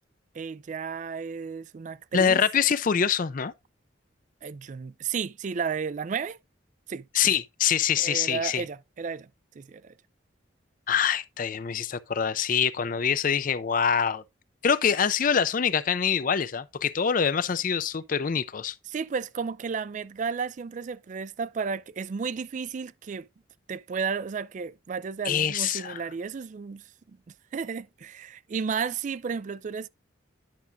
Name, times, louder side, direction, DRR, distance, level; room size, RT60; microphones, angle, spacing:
voice 1, 0.3-2.4 4.4-6.4 6.9-7.1 8.0-9.3 9.6-9.9 18.9-23.3 23.7-29.9, right 5 dB, 40° right, 0.3 m, -33 dB
voice 2, 2.1-3.5 7.1-8.6 10.9-14.2 14.6-18.8 25.2-26.0, left 7 dB, 45° left, 0.4 m, -25 dB
10.5 x 5.9 x 2.6 m
head